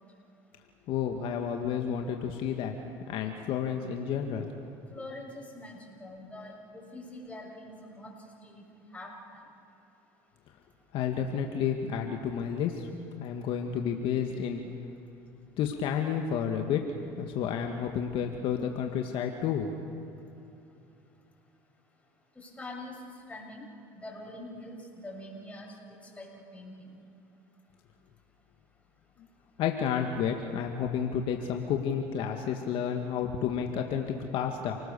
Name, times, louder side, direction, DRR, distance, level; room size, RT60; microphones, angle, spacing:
voice 1, 0.9-2.7 3.1-4.5 10.9-12.9 13.2-14.6 15.6-19.7 29.6-34.8, left 8 dB, 60° left, 3 dB, 1.9 m, -31 dB
voice 2, 4.9-8.1 8.4-9.4 22.4-23.0 23.3-23.7 24.0-26.3 26.5-27.0, left 1 dB, 15° left, -2 dB, 7.5 m, -44 dB
30.0 x 19.5 x 7.0 m, 2.8 s
supercardioid pair, 95°, 10 cm